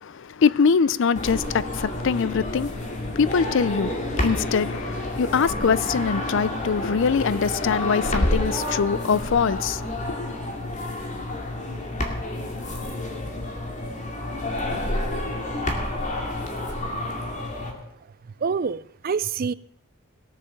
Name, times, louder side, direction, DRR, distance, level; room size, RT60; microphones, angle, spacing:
voice 1, 0.0-9.8 10.2-10.3, left 6 dB, 60° left, 0.5 m, -23 dB
sound 1, 1.2-17.7, left 1 dB, 35° left, 2.3 m, -29 dB
voice 2, 18.4-19.5, right 5 dB, 45° right, 0.4 m, -26 dB
18.0 x 7.6 x 7.0 m
head